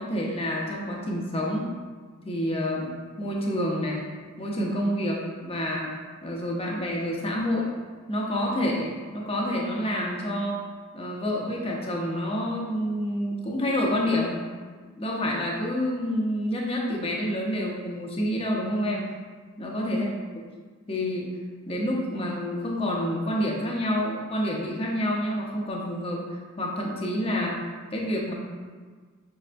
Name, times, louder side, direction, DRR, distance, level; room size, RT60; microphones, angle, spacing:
voice 1, 0.0-1.7 2.2-4.0 4.4-5.9 6.2-7.7 8.1-10.6 10.9-14.4 15.0-19.1 19.6-20.1 20.9-21.3 21.7-27.6 27.9-28.3, equal, 25° left, -2 dB, 0.7 m, -28 dB
5.5 x 3.2 x 2.5 m, 1.5 s
head